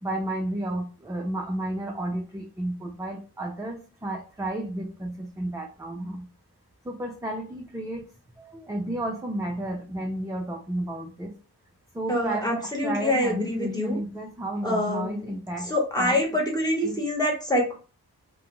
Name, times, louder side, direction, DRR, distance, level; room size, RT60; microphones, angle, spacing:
voice 1, 0.0-6.3 6.8-8.1 8.4-11.3 11.9-16.2 16.8-17.0, right 1 dB, 10° right, 0 dB, 0.4 m, -32 dB
voice 2, 12.1-14.0 14.6-15.3 15.7-17.7, left 1 dB, 10° left, -1 dB, 1.1 m, -25 dB
2.4 x 2.1 x 2.9 m, 0.36 s
wide cardioid pair, 85°, 39 cm